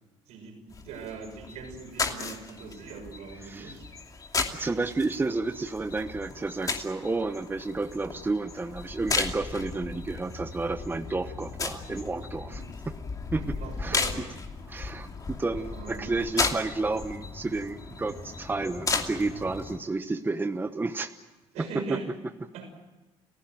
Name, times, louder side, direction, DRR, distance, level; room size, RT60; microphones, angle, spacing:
voice 1, 0.3-3.9 12.5-12.7 13.4-14.3 15.1-15.2 15.7-16.2 21.5-22.0 22.5-22.7, right 4 dB, 80° right, 3 dB, 6.3 m, -41 dB
sound 1, 0.7-19.8, left 4 dB, 30° left, 2.7 m, -35 dB
voice 2, 3.4-3.8 4.5-12.9 13.3-14.0 14.7-21.2 21.6-22.0, right 3 dB, 15° right, 9 dB, 1.0 m, -31 dB
30.0 x 15.5 x 9.0 m, 1.1 s
supercardioid pair, 90°, 11 cm